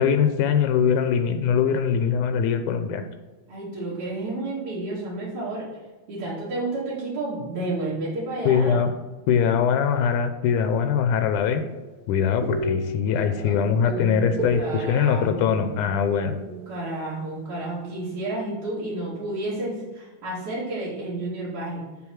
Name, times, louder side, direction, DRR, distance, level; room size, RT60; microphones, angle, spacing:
voice 1, 0.0-3.1 8.5-8.9 9.3-11.6 12.1-16.3, left 7 dB, 90° left, 8 dB, 2.2 m, -22 dB
voice 2, 3.5-5.7 6.1-8.8 13.4-15.8 16.1-21.8, right 2 dB, 75° right, -8 dB, 3.9 m, -31 dB
sound 1, 11.3-17.0, right 3 dB, 55° right, 1.9 m, -35 dB
7.0 x 7.0 x 4.8 m, 1.3 s
omnidirectional pair, 3.5 m